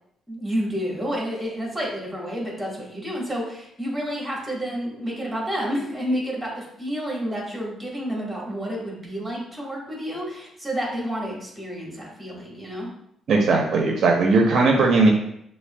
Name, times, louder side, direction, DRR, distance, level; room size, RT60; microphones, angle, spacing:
voice 1, 0.3-12.9, equal, 5° right, -3 dB, 1.4 m, -30 dB
voice 2, 13.3-15.1, right 3 dB, 65° right, 1 dB, 0.5 m, -18 dB
5.8 x 2.1 x 2.2 m, 0.74 s
cardioid pair, 90°, 0 cm